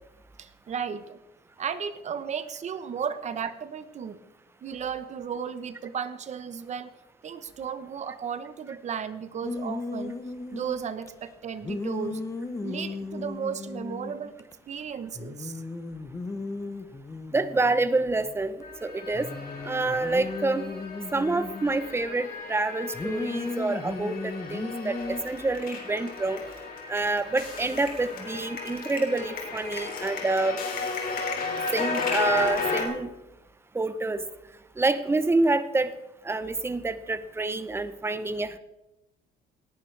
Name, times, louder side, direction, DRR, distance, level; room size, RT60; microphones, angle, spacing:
voice 1, 0.4-1.2 1.6-4.2 4.6-6.9 7.2-10.2 10.5-12.3 12.6-14.4 14.7-15.6 16.3-16.4, right 7 dB, 45° right, 12 dB, 1.0 m, -34 dB
sound 1, 9.4-11.1 11.6-14.5 14.8-14.9 15.1-18.6 19.1-21.9 22.9-25.2, left 3 dB, 20° left, 0.9 m, -36 dB
voice 2, 17.3-19.3 19.6-20.6 21.1-26.4 26.9-30.6 31.7-33.1 33.7-34.2 34.8-35.9 36.2-38.6, right 3 dB, 15° right, 12 dB, 0.8 m, -27 dB
sound 2, 18.6-32.8, left 4 dB, 60° left, 3.2 m, -34 dB
18.5 x 10.5 x 3.4 m, 0.96 s
cardioid pair, 110°, 17 cm